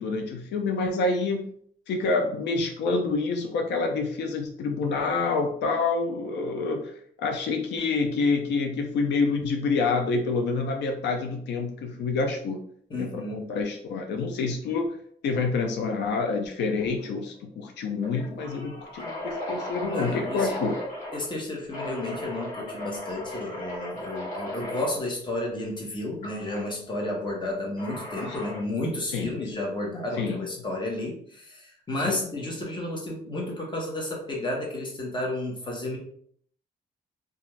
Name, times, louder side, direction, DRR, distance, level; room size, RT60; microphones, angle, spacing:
voice 1, 0.0-1.5 1.9-12.6 13.0-15.0 15.2-20.8 29.1-29.3 30.2-30.4 32.0-32.2, left 4 dB, 85° left, 3 dB, 0.4 m, -27 dB
voice 2, 12.9-13.4 19.9-20.5 21.1-36.0, left 1 dB, 25° left, -2 dB, 1.0 m, -32 dB
sound 1, 16.8-17.0 17.3-17.4 18.0-21.3 21.7-24.9 26.2-26.6 27.8-28.7, left 1 dB, 50° left, 1.3 m, -36 dB
2.4 x 2.4 x 3.1 m, 0.62 s
cardioid pair, 105°, 18 cm